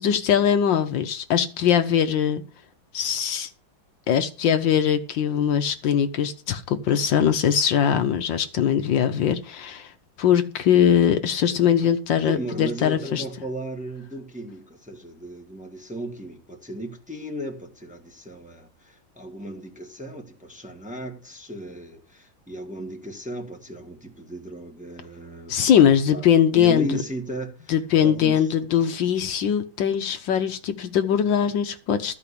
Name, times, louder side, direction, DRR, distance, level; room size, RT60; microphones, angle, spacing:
voice 1, 0.0-2.4 2.9-3.5 4.1-9.9 10.2-13.2 25.5-27.0 27.7-32.1, left 8 dB, 70° left, 1.5 m, -21 dB
voice 2, 12.2-25.6 26.1-26.3 26.5-28.5, right 1 dB, 5° right, 1.6 m, -35 dB
13.5 x 5.0 x 8.4 m
omnidirectional pair, 2.2 m